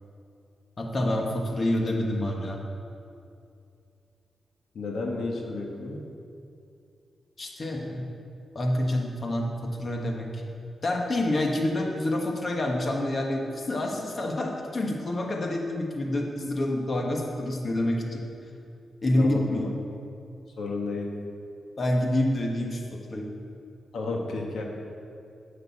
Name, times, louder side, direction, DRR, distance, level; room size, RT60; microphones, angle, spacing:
voice 1, 0.8-2.6 7.4-8.0 8.5-10.4 10.8-18.2 19.0-19.7 21.8-23.3, left 1 dB, 40° left, 1 dB, 1.3 m, -27 dB
voice 2, 4.7-6.0 19.2-19.5 20.6-21.2 23.9-24.6, left 3 dB, 80° left, 1 dB, 1.4 m, -32 dB
8.3 x 7.7 x 8.4 m, 2.5 s
wide cardioid pair, 115°, 0 cm